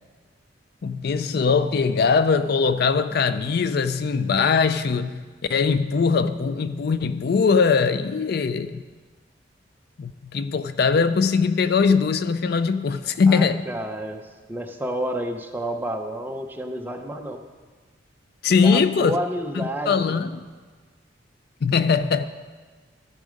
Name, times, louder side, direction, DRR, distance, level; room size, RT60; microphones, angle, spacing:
voice 1, 0.8-5.2 5.5-8.8 10.0-13.6 18.4-19.2 19.6-20.4 21.6-22.3, left 5 dB, 55° left, 0.4 m, -21 dB
voice 2, 13.3-14.2 14.5-17.4 18.6-20.2, right 1 dB, 10° right, 0.7 m, -30 dB
14.0 x 7.4 x 5.1 m
head